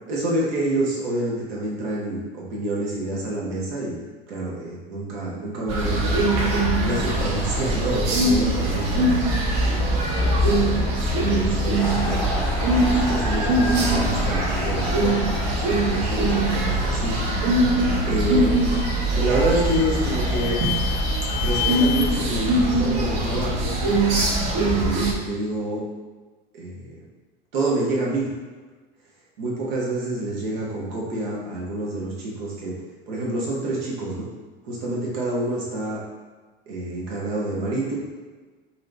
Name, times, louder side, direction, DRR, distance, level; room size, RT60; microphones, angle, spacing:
voice 1, 0.1-4.0 4.3-6.3 6.8-9.1 9.7-12.3 12.9-17.1 18.0-18.5 19.1-20.6 21.4-23.7 24.6-25.8 26.5-27.0 27.5-28.3 29.4-32.7 33.1-34.3 34.7-36.0 36.7-38.0, right 2 dB, 80° right, -4 dB, 1.1 m, -28 dB
sound 1, 5.7-25.1, right 1 dB, 55° right, 0.8 m, -22 dB
sound 2, 11.8-17.6, left 1 dB, 5° left, 0.5 m, -33 dB
sound 3, 17.6-17.9 18.4-18.9 19.4-22.1, left 14 dB, 55° left, 0.6 m, -32 dB
3.1 x 2.6 x 3.1 m, 1.3 s
hypercardioid pair, 85°, 29 cm